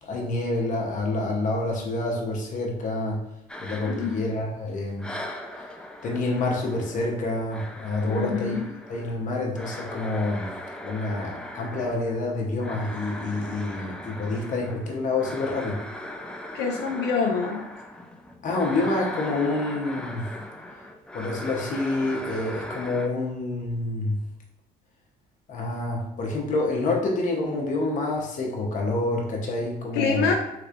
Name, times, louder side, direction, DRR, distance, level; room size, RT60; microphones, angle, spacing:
voice 1, 0.0-3.2 3.6-5.1 6.0-8.6 8.9-10.5 10.8-15.8 18.4-20.3 21.1-24.2 25.5-30.3, left 2 dB, 50° left, 0 dB, 0.9 m, -27 dB
sound 1, 3.5-4.7 5.0-23.1, left 1 dB, 5° left, 0.3 m, -39 dB
voice 2, 3.8-4.2 8.0-8.7 16.5-17.6 29.9-30.3, left 5 dB, 85° left, 1 dB, 0.4 m, -26 dB
3.3 x 3.2 x 2.4 m, 0.85 s
cardioid pair, 110°, 17 cm